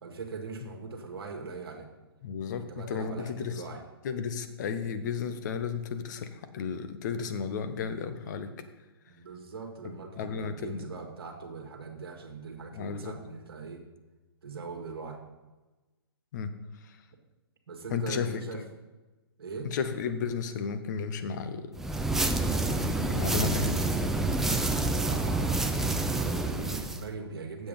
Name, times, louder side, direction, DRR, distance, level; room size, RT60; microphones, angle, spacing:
voice 1, 0.0-1.9 2.5-3.8 9.1-13.9 14.4-15.2 17.7-18.6 19.4-19.7 24.5-27.7, right 4 dB, 65° right, 2 dB, 1.7 m, -41 dB
voice 2, 2.2-3.6 4.0-8.5 10.2-10.8 12.7-13.2 16.3-16.5 16.8-17.0 17.9-18.3 19.6-21.8 22.6-23.9, left 6 dB, 45° left, 9 dB, 1.0 m, -33 dB
sound 1, 21.8-27.0, right 2 dB, 5° right, 0.4 m, -28 dB
8.6 x 7.6 x 5.2 m, 1.2 s
figure-of-eight pair, 130°, 13 cm